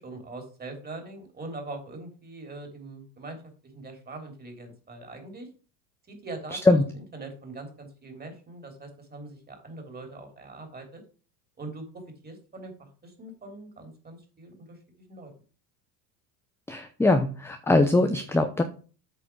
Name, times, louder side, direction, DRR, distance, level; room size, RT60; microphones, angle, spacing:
voice 1, 0.0-3.4 3.6-5.5 6.1-6.8 7.1-11.0 11.6-15.3, right 2 dB, 20° right, 4 dB, 3.4 m, -42 dB
voice 2, 16.7-18.6, left 2 dB, 5° left, 7 dB, 0.7 m, -21 dB
8.5 x 4.9 x 6.2 m, 0.38 s
supercardioid pair, 105°, 45 cm